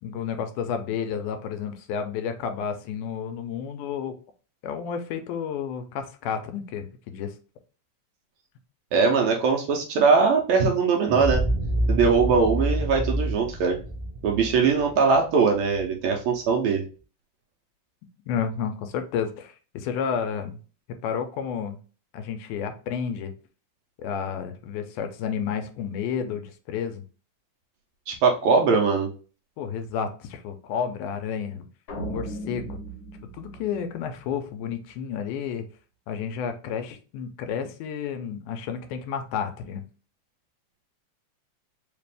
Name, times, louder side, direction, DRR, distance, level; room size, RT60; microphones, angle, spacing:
voice 1, 0.0-4.2 4.6-7.3 18.3-20.6 21.0-21.8 22.1-23.3 24.0-27.0 29.6-31.6 32.1-32.8 33.2-35.7 36.1-39.8, left 7 dB, 80° left, 7 dB, 2.0 m, -31 dB
voice 2, 8.9-11.4 11.9-13.8 14.2-16.8 28.1-29.1, right 5 dB, 75° right, 1 dB, 1.8 m, -21 dB
sound 1, 11.1-15.8, right 1 dB, 5° right, 0.4 m, -27 dB
sound 2, 31.9-34.3, right 1 dB, 55° left, 1.3 m, -37 dB
5.0 x 2.5 x 3.3 m, 0.37 s
omnidirectional pair, 3.7 m